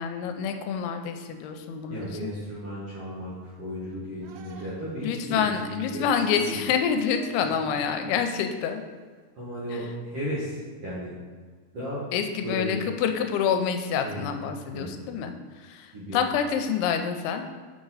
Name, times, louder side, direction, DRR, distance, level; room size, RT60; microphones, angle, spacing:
voice 1, 0.0-2.3 5.0-8.8 12.1-17.4, left 7 dB, 85° left, 6 dB, 2.5 m, -27 dB
voice 2, 1.9-6.6 7.5-7.6 8.0-8.1 9.4-11.2 11.7-12.0 12.4-12.8 14.0-15.2 15.9-16.2, equal, 55° right, -9 dB, 1.8 m, -35 dB
sound 1, 4.2-5.1 7.0-7.8 9.1-9.2, right 7 dB, 90° right, 2.6 m, -48 dB
6.7 x 5.0 x 4.0 m, 1.5 s
omnidirectional pair, 4.5 m